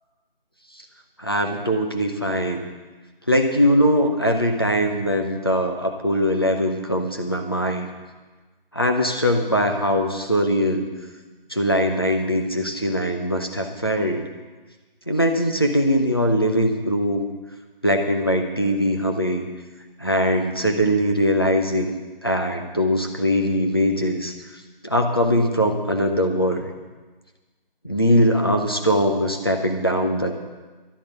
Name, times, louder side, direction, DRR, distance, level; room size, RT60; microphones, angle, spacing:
voice 1, 1.2-2.6 3.3-7.9 8.7-10.9 11.5-14.2 15.1-17.2 17.8-19.4 20.0-21.9 22.2-24.3 24.8-26.7 27.8-30.3, equal, 25° left, 3 dB, 0.9 m, -21 dB
12.5 x 8.8 x 8.1 m, 1.3 s
figure-of-eight pair, 175°, 29 cm